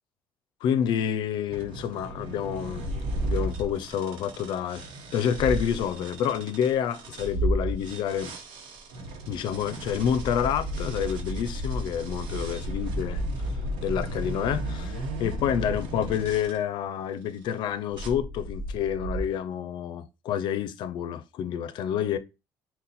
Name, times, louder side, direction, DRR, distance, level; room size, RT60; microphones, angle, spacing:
voice 1, 0.6-2.9 3.2-4.9 5.1-8.3 9.3-13.2 13.8-22.2, left 9 dB, 70° left, 0.4 m, -28 dB
sound 1, 1.5-7.3 7.8-16.6 17.2-17.5 17.9-18.1, right 2 dB, 85° right, 0.8 m, -40 dB
sound 2, 2.7-3.9 5.3-5.9 7.2-7.9 9.8-16.5 17.9-19.2, equal, 60° right, 1.1 m, -32 dB
4.0 x 2.1 x 4.0 m
cardioid pair, 140°, 8 cm